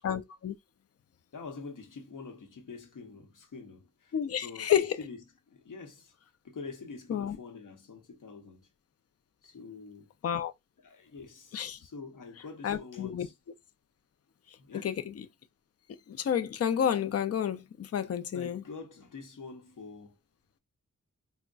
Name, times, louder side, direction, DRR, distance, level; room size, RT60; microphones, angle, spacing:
voice 1, 0.0-0.5 4.1-5.0 7.1-7.4 10.2-10.5 11.5-11.8 12.6-13.3 14.8-15.1 16.1-18.6, left 9 dB, 50° left, 0.4 m, -30 dB
voice 2, 1.3-6.1 6.4-8.7 9.4-10.1 10.8-13.3 14.6-15.0 18.3-20.2, left 4 dB, 70° left, 0.9 m, -46 dB
3.8 x 2.1 x 2.3 m
cardioid pair, 55°, 33 cm